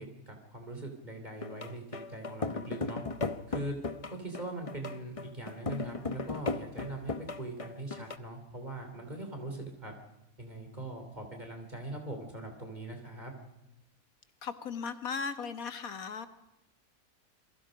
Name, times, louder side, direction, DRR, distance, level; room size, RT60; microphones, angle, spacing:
voice 1, 0.0-3.0 3.5-3.7 4.1-10.0 10.4-13.3, right 2 dB, 30° right, 3 dB, 3.4 m, -41 dB
sound 1, 1.4-8.2, left 4 dB, 30° left, 0.8 m, -37 dB
voice 2, 14.4-16.3, left 5 dB, 80° left, 10 dB, 1.9 m, -37 dB
27.5 x 22.0 x 5.1 m, 0.95 s
omnidirectional pair, 1.5 m